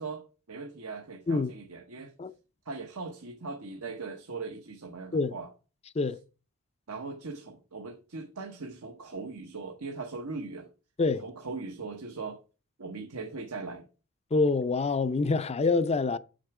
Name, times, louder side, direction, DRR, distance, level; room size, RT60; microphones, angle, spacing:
voice 1, 0.0-2.1 2.7-5.5 6.9-10.7 11.2-12.4 12.8-13.8, right 4 dB, 75° right, 1.1 m, -39 dB
voice 2, 14.3-16.2, left 3 dB, 30° left, 0.5 m, -26 dB
7.8 x 6.6 x 4.8 m
head